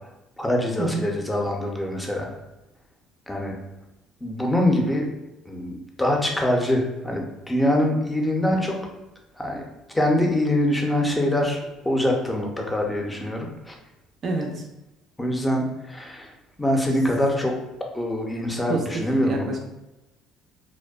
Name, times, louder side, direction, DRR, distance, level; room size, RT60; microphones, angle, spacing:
voice 1, 0.4-2.3 3.3-3.5 4.2-5.0 5.5-8.8 9.3-9.7 9.9-11.6 11.8-13.7 15.2-16.3 16.6-17.5 17.9-19.5, left 1 dB, 10° left, 1 dB, 0.5 m, -24 dB
voice 2, 14.2-14.7 18.7-18.8 19.2-19.6, right 2 dB, 45° right, 1 dB, 0.3 m, -27 dB
2.6 x 2.1 x 2.3 m, 0.98 s
cardioid pair, 105°, 0 cm